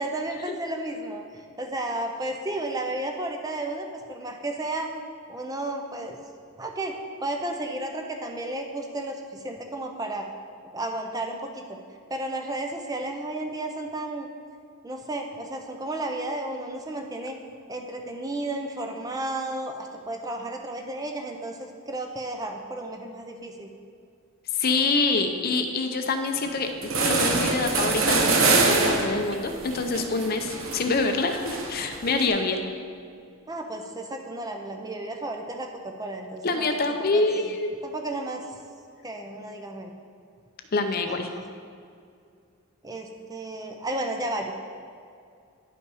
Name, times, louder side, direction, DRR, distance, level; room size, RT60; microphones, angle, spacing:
voice 1, 0.0-4.9 5.3-6.2 6.6-10.3 10.7-11.8 12.1-14.3 14.8-17.3 17.7-23.7 33.5-36.8 37.1-37.3 37.8-38.4 39.0-39.9 41.1-41.4 42.8-44.5, right 1 dB, 15° right, 3 dB, 0.5 m, -33 dB
voice 2, 24.5-32.6 36.4-37.7 40.7-41.3, left 3 dB, 45° left, 6 dB, 0.6 m, -26 dB
sound 1, 26.5-26.6 26.8-32.3, right 3 dB, 70° right, 1.0 m, -25 dB
10.5 x 5.5 x 4.8 m, 2.3 s
head